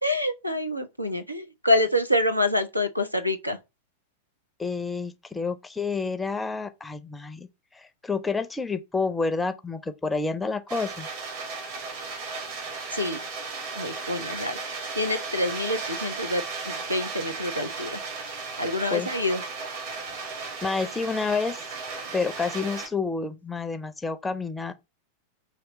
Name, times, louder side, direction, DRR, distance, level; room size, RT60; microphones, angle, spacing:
voice 1, 0.0-3.6 12.9-13.2 13.8-18.0 18.6-19.4, left 1 dB, 90° right, 0.6 m, -27 dB
voice 2, 4.6-7.5 7.7-11.1 18.9-19.1 20.6-21.6 22.1-24.7, left 4 dB, 10° left, 0.5 m, -29 dB
sound 1, 10.7-22.9, right 4 dB, 50° right, 1.7 m, -35 dB
5.7 x 2.9 x 3.1 m
figure-of-eight pair, 90°, 0 cm